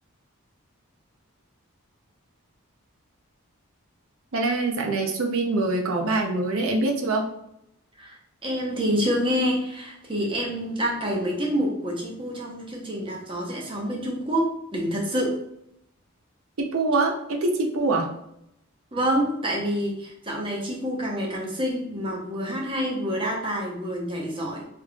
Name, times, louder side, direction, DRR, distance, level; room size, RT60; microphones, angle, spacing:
voice 1, 4.3-7.3 16.6-18.1, right 2 dB, 70° right, 2 dB, 0.6 m, -24 dB
voice 2, 8.4-15.4 18.9-24.6, equal, 25° right, -1 dB, 0.8 m, -27 dB
3.5 x 3.3 x 2.3 m, 0.78 s
head